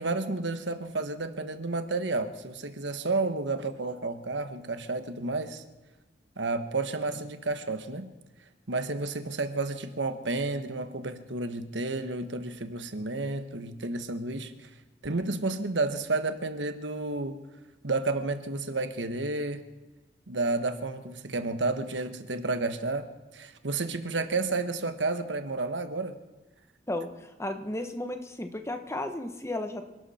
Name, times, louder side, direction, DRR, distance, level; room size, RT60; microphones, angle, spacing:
voice 1, 0.0-5.6 6.4-8.1 8.7-14.5 15.0-17.4 17.8-19.6 20.3-23.1 23.3-26.2, right 3 dB, 80° right, 9 dB, 1.2 m, -31 dB
voice 2, 26.9-29.9, left 1 dB, 15° left, 7 dB, 1.2 m, -34 dB
27.0 x 12.0 x 4.3 m, 1.1 s
head